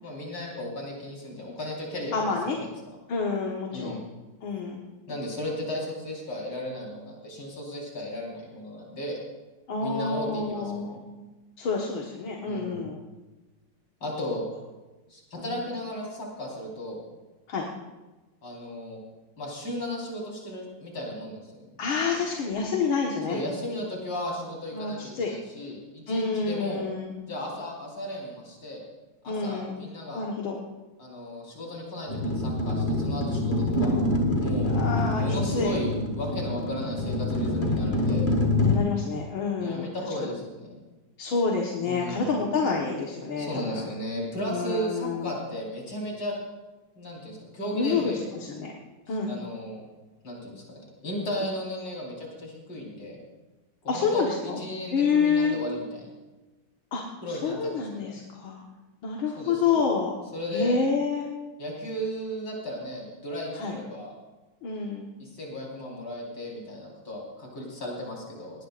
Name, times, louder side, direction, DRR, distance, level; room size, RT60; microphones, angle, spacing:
voice 1, 0.0-2.7 3.7-4.0 5.1-9.2 9.8-11.0 12.5-12.9 14.0-14.5 15.1-17.0 18.4-19.0 19.4-21.5 23.3-26.8 27.3-28.8 29.2-30.2 31.0-34.0 34.4-34.7 35.2-38.3 39.6-40.8 41.8-42.3 43.4-46.3 47.0-48.2 49.1-49.8 50.2-53.2 53.8-56.1 57.2-58.1 59.4-59.8 60.3-60.7 61.6-64.1 65.2-68.6, equal, 65° left, -3 dB, 5.1 m, -35 dB
voice 2, 2.1-2.6 3.1-3.9 4.4-4.8 9.7-11.2 11.6-13.0 15.4-15.6 17.5-17.7 21.8-23.4 24.7-25.3 26.1-27.2 29.3-29.8 30.1-30.6 34.6-35.2 35.5-35.7 38.6-39.9 41.2-43.9 44.5-45.3 47.7-48.7 49.1-49.4 53.9-54.6 54.9-55.6 56.9-57.0 57.3-58.6 59.0-60.1 60.5-61.2 63.6-63.8 64.6-65.1, left 5 dB, 85° left, -1 dB, 2.3 m, -28 dB
sound 1, 32.1-38.8, left 1 dB, 35° left, 2.1 m, -26 dB
20.0 x 18.5 x 2.5 m, 1.1 s
omnidirectional pair, 2.1 m